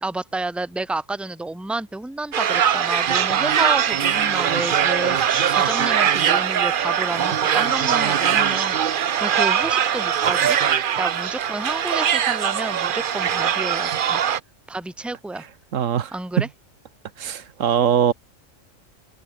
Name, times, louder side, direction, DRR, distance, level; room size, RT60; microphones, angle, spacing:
voice 1, 0.0-8.8 9.2-10.6 11.0-14.2 14.7-15.5 16.1-16.5, right 2 dB, ahead, 1.2 m, -30 dB
sound 1, 2.3-14.4, right 8 dB, 50° right, 0.8 m, -21 dB
voice 2, 15.7-16.1 16.4-16.5 17.2-18.1, right 9 dB, 75° right, 1.3 m, -21 dB
omnidirectional pair, 1.3 m